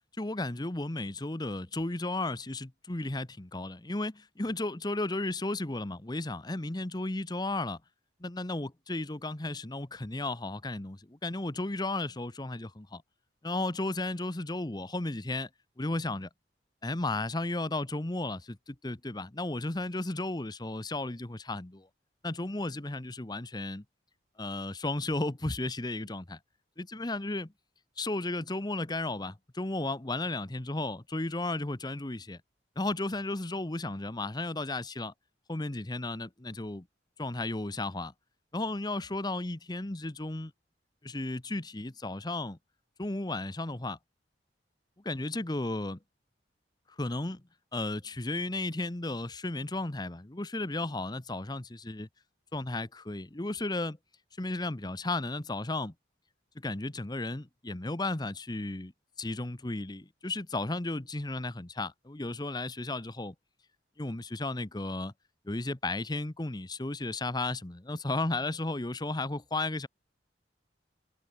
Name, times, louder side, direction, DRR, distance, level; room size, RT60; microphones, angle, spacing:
voice 1, 0.2-7.8 8.2-13.0 13.4-15.5 15.8-16.3 16.8-21.9 22.2-23.8 24.4-26.4 26.8-27.5 28.0-32.4 32.8-35.1 35.5-36.9 37.2-38.1 38.5-40.5 41.0-42.6 43.0-44.0 45.0-46.0 47.0-47.4 47.7-52.1 52.5-54.0 54.4-55.9 56.5-58.9 59.2-63.3 64.0-65.1 65.4-69.9, left 2 dB, 20° left, 1.0 m, -34 dB
head